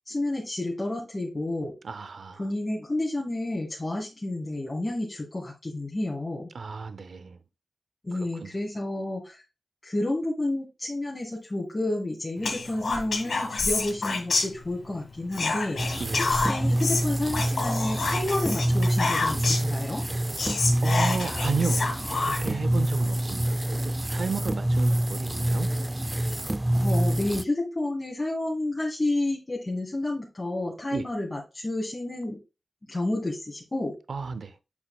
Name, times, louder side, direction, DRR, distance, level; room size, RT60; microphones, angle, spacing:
voice 1, 0.1-1.7 2.4-6.5 8.0-9.4 9.8-20.0 26.7-32.4 32.9-34.0, left 2 dB, 30° left, 1.9 m, -30 dB
voice 2, 1.8-2.4 6.5-7.4 8.1-8.5 16.0-16.2 20.4-21.8 22.2-25.7 30.9-31.1 34.1-34.5, right 5 dB, 80° right, 0.5 m, -33 dB
Whispering, 12.4-15.0 15.3-19.8 20.1-20.2 20.4-22.6, left 3 dB, 85° left, 1.8 m, -28 dB
sound 1, 15.8-27.4, right 1 dB, 20° right, 0.4 m, -26 dB
8.1 x 5.9 x 2.3 m
wide cardioid pair, 70°, 0 cm